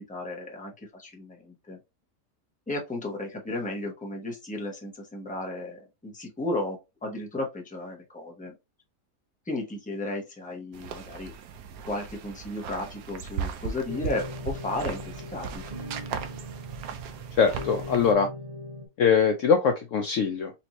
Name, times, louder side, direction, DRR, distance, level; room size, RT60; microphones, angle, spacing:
voice 1, 0.1-1.8 2.7-8.5 9.5-11.3 11.8-15.6, left 2 dB, 5° left, 0.8 m, -34 dB
sound 1, 10.7-18.1, right 6 dB, 70° right, 1.0 m, -38 dB
sound 2, 13.9-18.9, equal, 30° right, 1.1 m, -39 dB
voice 2, 17.4-18.3 19.0-20.5, left 6 dB, 65° left, 0.8 m, -22 dB
4.3 x 2.8 x 2.9 m
omnidirectional pair, 1.7 m